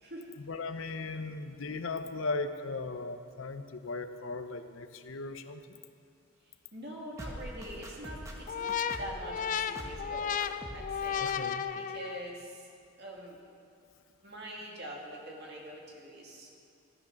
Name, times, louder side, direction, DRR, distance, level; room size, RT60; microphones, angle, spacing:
voice 1, 0.4-5.8 11.2-11.6, left 3 dB, 70° left, 9 dB, 0.7 m, -37 dB
voice 2, 6.7-11.3 11.7-12.7 13.0-13.4 14.2-16.6, right 1 dB, 55° right, -1 dB, 2.1 m, -44 dB
sound 1, 7.2-9.3 9.8-10.1 10.4-11.0 11.3-11.4, right 1 dB, 15° right, 1.2 m, -43 dB
sound 2, 8.5-12.4, left 8 dB, 40° left, 0.3 m, -34 dB
13.5 x 9.6 x 5.8 m, 2.5 s
head